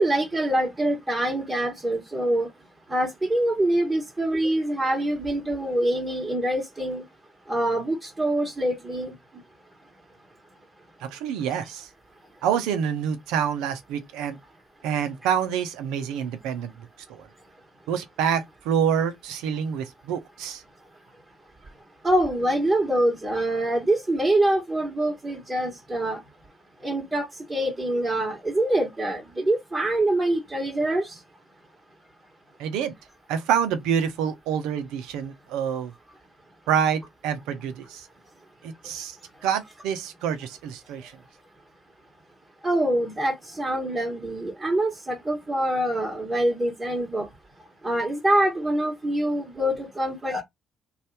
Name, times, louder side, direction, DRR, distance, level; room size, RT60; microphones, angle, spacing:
voice 1, 0.0-2.5 2.9-7.0 7.5-9.1 22.0-26.2 26.8-31.2 42.6-47.3 47.8-50.4, right 1 dB, 20° right, 1.3 m, -25 dB
voice 2, 11.0-11.9 12.4-14.4 14.8-16.7 17.1-17.3 17.9-20.6 32.6-32.9 33.3-35.9 36.7-38.1 38.6-39.2 39.4-41.1, right 8 dB, 75° right, 0.6 m, -27 dB
2.7 x 2.4 x 3.2 m
hypercardioid pair, 50°, 0 cm